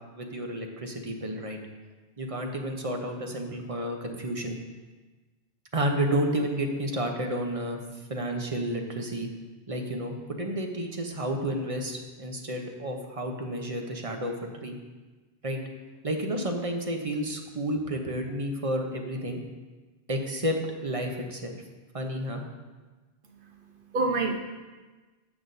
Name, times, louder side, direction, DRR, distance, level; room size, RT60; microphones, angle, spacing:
voice 1, 0.1-1.6 2.2-4.6 5.7-7.8 8.1-9.3 9.7-14.8 15.4-15.6 16.0-19.4 20.1-20.6 20.8-21.6 21.9-22.4, right 1 dB, 35° right, 3 dB, 0.9 m, -31 dB
voice 2, 23.3-24.4, right 3 dB, 55° right, 2 dB, 1.1 m, -29 dB
15.5 x 6.1 x 2.7 m, 1.3 s
omnidirectional pair, 1.1 m